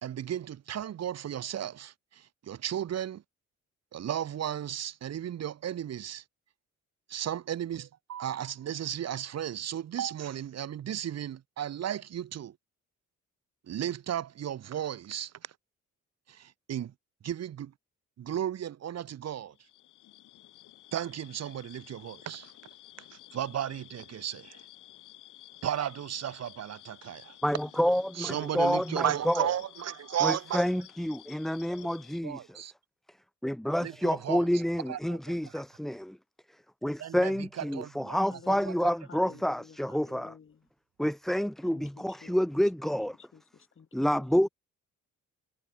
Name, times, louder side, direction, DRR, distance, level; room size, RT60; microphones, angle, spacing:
voice 1, 0.0-3.2 3.9-6.2 7.1-12.6 13.6-15.5 16.3-16.9 17.2-17.7 18.2-19.5 20.9-22.5 23.0-24.6 25.6-27.4 28.1-30.6 32.2-32.7 33.8-34.5 34.9-35.6 37.0-38.7, right 10 dB, 60° right, 1.6 m, -35 dB
sound 1, 19.5-32.2, left 15 dB, 85° left, 5.0 m, -53 dB
voice 2, 27.4-29.5 30.2-32.5 33.4-36.2 36.8-40.3 41.0-43.2 43.9-44.5, equal, ahead, 0.5 m, -28 dB
voice 3, 38.1-40.7 41.6-42.4 42.8-44.3, left 6 dB, 45° left, 5.0 m, -52 dB
cardioid pair, 90°, 30 cm